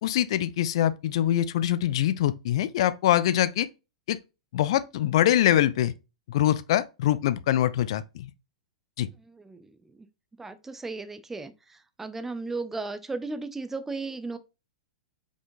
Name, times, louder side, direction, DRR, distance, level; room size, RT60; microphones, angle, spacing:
voice 1, 0.0-3.7 4.1-4.2 4.5-5.9 6.3-8.3 9.0-9.1, left 12 dB, 50° left, 0.3 m, -24 dB
voice 2, 9.2-10.1 10.4-14.4, right 3 dB, 10° right, 0.4 m, -36 dB
5.0 x 3.5 x 2.6 m
figure-of-eight pair, 100°, 4 cm